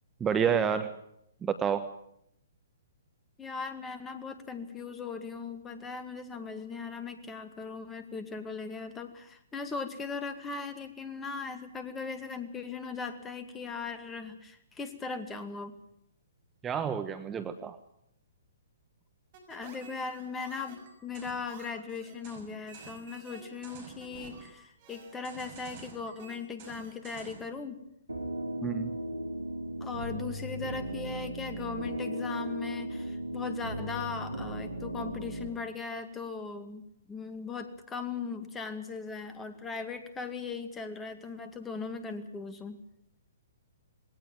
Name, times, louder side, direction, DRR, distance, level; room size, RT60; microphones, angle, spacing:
voice 1, 0.2-1.0 1.4-1.9 16.6-17.8 28.6-28.9, right 7 dB, 15° right, 9 dB, 1.2 m, -29 dB
voice 2, 3.4-15.7 19.5-27.8 29.8-42.8, left 5 dB, 15° left, 8 dB, 2.3 m, -39 dB
sound 1, 19.3-27.5, right 5 dB, 40° right, 6.5 m, -50 dB
sound 2, 28.1-35.5, right 1 dB, 85° right, 3.1 m, -36 dB
20.0 x 18.0 x 9.2 m, 0.75 s
figure-of-eight pair, 120°, 0 cm